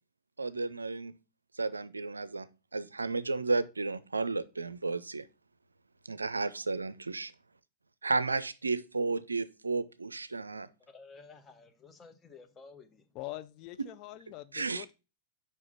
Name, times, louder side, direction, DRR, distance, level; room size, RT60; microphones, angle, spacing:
voice 1, 0.4-1.2 1.5-2.5 2.7-5.3 6.1-7.3 8.0-10.7 13.8-13.9 14.5-14.9, right 3 dB, 85° right, 0.4 m, -33 dB
voice 2, 10.8-13.0, left 4 dB, 25° left, 1.1 m, -53 dB
voice 3, 13.2-14.9, left 17 dB, 45° left, 0.4 m, -43 dB
5.5 x 4.9 x 5.5 m
figure-of-eight pair, 95°, 0 cm